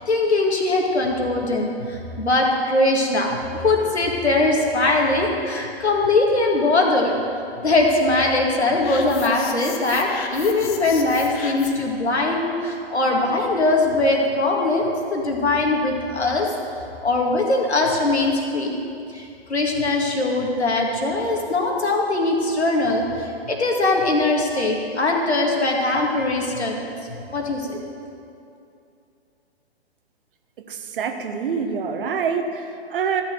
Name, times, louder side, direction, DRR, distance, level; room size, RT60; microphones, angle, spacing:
voice 1, 0.0-3.4 3.6-7.1 7.6-16.5 17.0-18.8 19.1-26.9 27.3-27.8, left 2 dB, 85° left, 0 dB, 2.1 m, -21 dB
sound 1, 8.8-11.9, left 7 dB, 35° left, 1.0 m, -36 dB
voice 2, 30.6-33.2, right 6 dB, 55° right, 6 dB, 1.2 m, -26 dB
13.5 x 6.5 x 6.7 m, 2.6 s
figure-of-eight pair, 125°, 32 cm